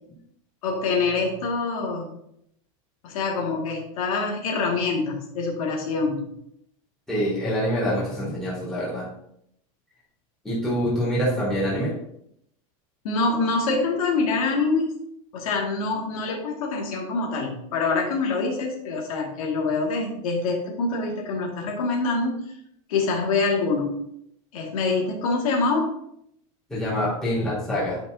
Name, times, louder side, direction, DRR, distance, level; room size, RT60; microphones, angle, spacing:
voice 1, 0.6-2.1 3.0-6.3 13.0-14.9 15.3-22.5 22.9-24.0 24.5-25.9, left 3 dB, 80° left, -1 dB, 2.1 m, -25 dB
voice 2, 7.1-9.1 10.4-11.9 26.7-28.0, equal, 5° left, -10 dB, 3.0 m, -25 dB
11.0 x 5.5 x 2.7 m, 0.74 s
supercardioid pair, 180°, 18 cm